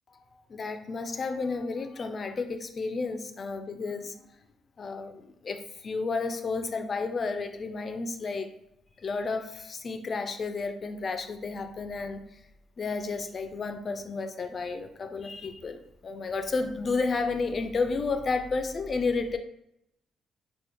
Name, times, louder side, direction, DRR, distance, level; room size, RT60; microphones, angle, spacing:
voice 1, 0.5-4.2 4.8-8.5 9.0-12.2 12.8-19.4, left 4 dB, 45° left, 7 dB, 0.3 m, -32 dB
2.9 x 2.1 x 3.4 m, 0.81 s
cardioid pair, 90°, 0 cm